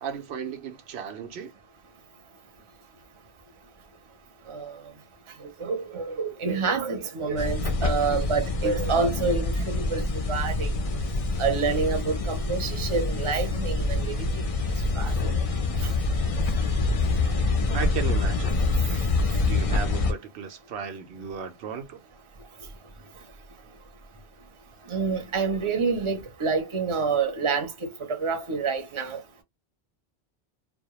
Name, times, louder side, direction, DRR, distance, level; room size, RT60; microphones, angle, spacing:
voice 1, 0.0-1.5 17.7-18.6 19.5-22.0, right 7 dB, 90° right, 0.9 m, -35 dB
voice 2, 4.5-4.8 5.6-10.7 11.4-14.4 14.9-15.4 24.9-29.2, right 4 dB, 35° right, 0.6 m, -28 dB
sound 1, 7.4-20.1, left 3 dB, 50° left, 0.4 m, -26 dB
2.2 x 2.0 x 2.8 m
omnidirectional pair, 1.1 m